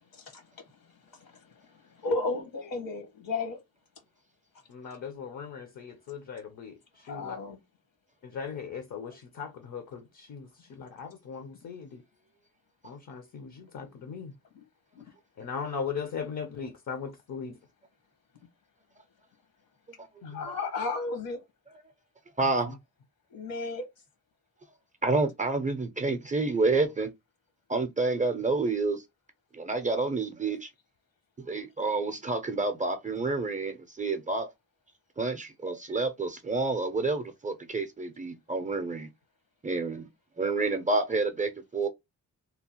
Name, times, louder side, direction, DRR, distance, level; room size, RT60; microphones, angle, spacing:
voice 1, 2.0-3.6 7.0-7.6 20.2-21.4 23.3-23.9, left 3 dB, 75° left, 1.2 m, -33 dB
voice 2, 4.7-7.4 8.2-12.0 12.8-14.3 15.4-17.6 20.2-20.5 22.4-22.5, left 6 dB, 55° left, 0.6 m, -39 dB
voice 3, 22.4-22.8 25.0-27.1 27.7-29.0 29.5-30.7 31.5-34.5 35.2-39.1 39.6-40.1 40.4-41.9, right 3 dB, 20° right, 0.4 m, -29 dB
2.8 x 2.0 x 2.8 m
wide cardioid pair, 105°, 35 cm